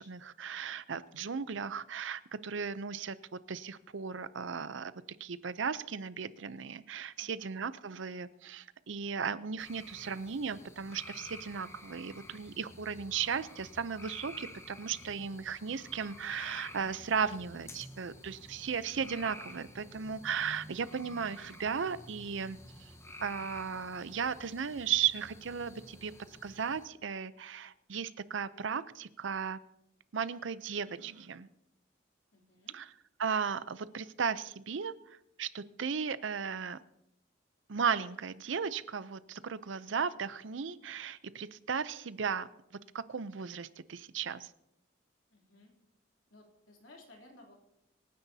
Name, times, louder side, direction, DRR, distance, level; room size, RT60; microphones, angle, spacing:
voice 1, 0.0-4.9 5.2-22.9 23.2-26.1 26.4-29.6 30.1-31.5 32.7-32.9 33.2-36.8 37.7-44.5, right 6 dB, 80° right, 15 dB, 0.6 m, -36 dB
voice 2, 7.2-7.5 20.6-20.8 32.3-32.8 45.3-45.7 46.3-47.5, left 2 dB, 80° left, -1 dB, 3.2 m, -58 dB
sound 1, 9.6-26.9, left 1 dB, 15° left, 1.1 m, -51 dB
25.5 x 9.9 x 2.8 m, 0.83 s
head